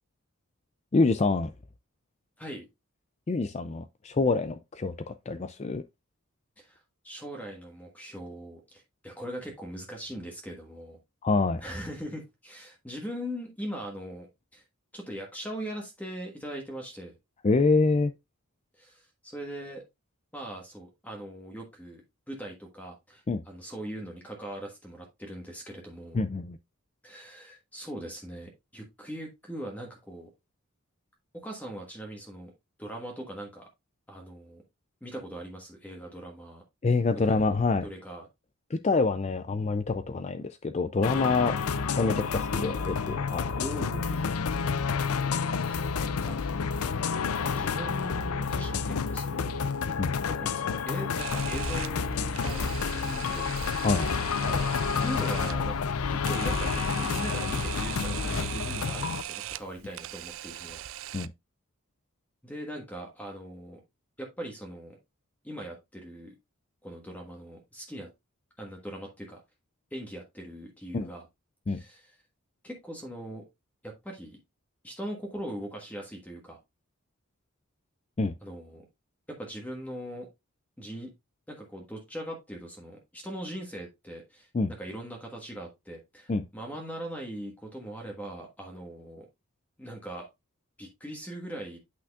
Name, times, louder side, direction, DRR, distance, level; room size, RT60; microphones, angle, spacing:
voice 1, 0.9-1.5 3.3-5.8 11.2-11.6 17.4-18.1 23.3-23.4 26.1-26.6 36.8-37.8 38.7-41.6 42.0-43.5 50.0-50.1 53.8-54.1 61.1-61.3 70.9-71.1 71.7-71.8 78.2-78.3 84.5-84.7 86.3-86.4, left 3 dB, 30° left, 0.4 m, -26 dB
voice 2, 6.6-11.0 11.6-14.6 14.9-17.1 18.7-19.8 20.3-22.0 22.3-26.2 27.0-30.3 31.3-32.5 32.8-33.7 34.1-34.6 35.0-36.6 37.2-37.6 37.8-38.3 43.6-44.4 45.2-45.3 45.7-49.5 50.2-53.5 54.5-54.7 55.0-55.8 56.1-58.2 58.5-60.8 62.4-63.8 64.2-65.0 65.4-66.3 66.8-68.1 68.6-69.4 69.9-71.3 71.7-72.2 72.6-73.4 73.8-74.4 74.8-76.6 78.4-78.8 79.3-80.3 80.8-81.1 81.5-84.5 84.8-89.2 89.8-90.3 90.8-91.8, right 1 dB, 5° left, 1.4 m, -40 dB
sound 1, 41.0-59.2, left 5 dB, 90° left, 0.5 m, -30 dB
sound 2, 51.2-58.4, left 2 dB, 70° left, 1.9 m, -38 dB
Camera, 51.2-61.3, right 13 dB, 65° right, 0.4 m, -40 dB
8.5 x 6.0 x 2.4 m
head